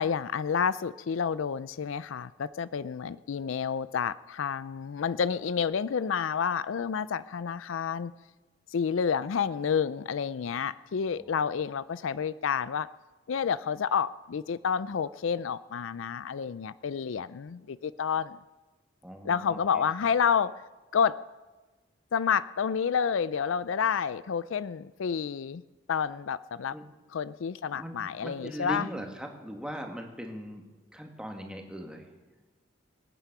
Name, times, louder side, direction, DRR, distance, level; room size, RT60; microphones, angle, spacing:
voice 1, 0.0-8.1 8.7-12.9 13.3-18.4 19.2-20.5 20.9-21.2 22.1-25.6 25.9-26.8 27.1-28.9, left 7 dB, 75° left, 16 dB, 0.4 m, -29 dB
voice 2, 19.0-19.8 26.7-26.8 27.7-30.6 30.9-32.1, equal, 5° right, 2 dB, 1.8 m, -40 dB
25.5 x 9.2 x 6.0 m, 1.2 s
head